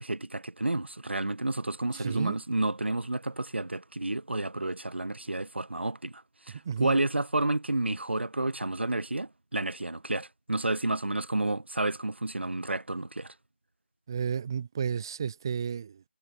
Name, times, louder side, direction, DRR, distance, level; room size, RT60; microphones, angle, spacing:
voice 1, 0.0-6.2 6.5-13.3, right 2 dB, 70° right, 3.4 m, -30 dB
voice 2, 1.9-2.4 6.6-7.0 14.1-16.0, right 7 dB, 20° right, 2.7 m, -32 dB
figure-of-eight pair, 170°, 6 cm